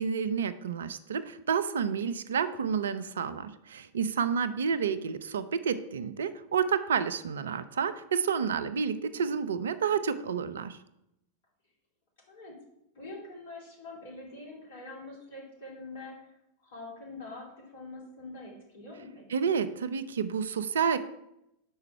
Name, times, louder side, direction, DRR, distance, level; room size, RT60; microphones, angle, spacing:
voice 1, 0.0-10.8 19.3-21.0, right 6 dB, 65° right, 13 dB, 0.4 m, -30 dB
voice 2, 4.1-4.6 8.8-9.3 12.3-12.6 12.9-19.5, left 2 dB, 55° left, -2 dB, 2.6 m, -45 dB
5.6 x 4.8 x 5.6 m, 0.83 s
figure-of-eight pair, 90°, 0 cm